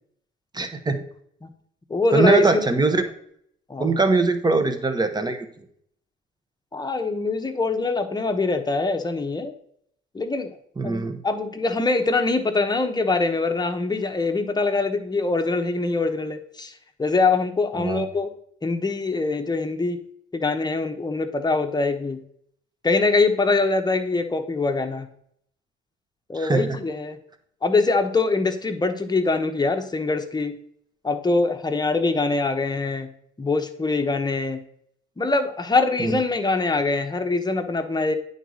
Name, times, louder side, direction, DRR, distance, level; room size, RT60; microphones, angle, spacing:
voice 1, 0.5-1.0 2.1-3.0 3.8-5.5 10.8-11.2 17.7-18.1 26.3-26.8 36.0-36.1, right 3 dB, 20° right, 7 dB, 1.1 m, -21 dB
voice 2, 1.9-2.6 3.7-4.0 6.7-9.5 10.1-10.6 10.8-18.3 18.6-20.0 20.3-22.2 22.8-25.1 26.3-27.2 27.6-30.6 31.0-33.1 33.4-34.6 35.2-38.1, left 3 dB, 20° left, 6 dB, 1.0 m, -23 dB
9.1 x 4.1 x 6.4 m, 0.67 s
cardioid pair, 90°, 20 cm